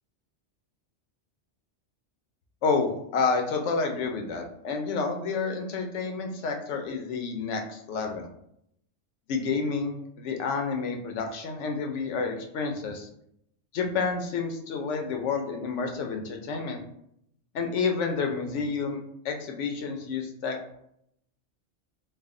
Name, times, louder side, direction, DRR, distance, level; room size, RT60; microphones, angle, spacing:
voice 1, 2.6-8.3 9.3-13.1 13.7-16.8 17.5-19.0 19.2-20.6, left 4 dB, 80° left, 3 dB, 0.9 m, -29 dB
3.2 x 2.0 x 3.6 m, 0.74 s
omnidirectional pair, 1.2 m